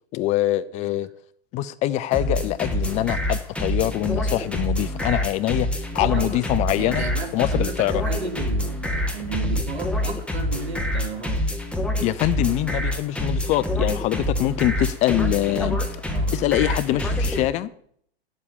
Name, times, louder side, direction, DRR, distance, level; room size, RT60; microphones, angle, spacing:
voice 1, 0.1-1.1 1.5-7.0 7.3-8.0 12.0-15.8 16.3-17.7, left 15 dB, 25° left, 0.4 m, -24 dB
sound 1, 2.1-17.5, left 1 dB, 5° left, 1.7 m, -26 dB
voice 2, 6.8-11.5 16.1-16.3, right 4 dB, 80° right, 2.6 m, -34 dB
9.7 x 7.4 x 8.9 m
hypercardioid pair, 105°, 32 cm